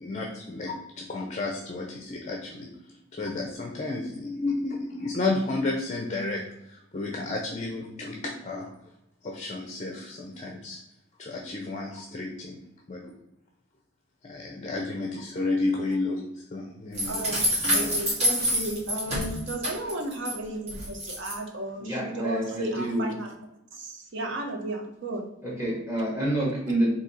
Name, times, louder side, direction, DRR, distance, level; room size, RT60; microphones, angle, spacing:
voice 1, 0.0-2.7 3.1-6.4 6.7-8.7 9.2-10.8 11.2-12.6 12.9-13.1 14.2-18.0, left 2 dB, 35° left, 1 dB, 0.5 m, -32 dB
sound 1, 16.9-20.3 20.7-21.3, equal, 30° right, 1.6 m, -27 dB
voice 2, 17.1-23.3 23.7-25.3, right 1 dB, 60° right, 2 dB, 0.8 m, -34 dB
voice 3, 21.8-23.1 25.4-26.9, right 1 dB, 15° right, -4 dB, 1.5 m, -28 dB
3.9 x 2.8 x 4.1 m, 0.85 s
head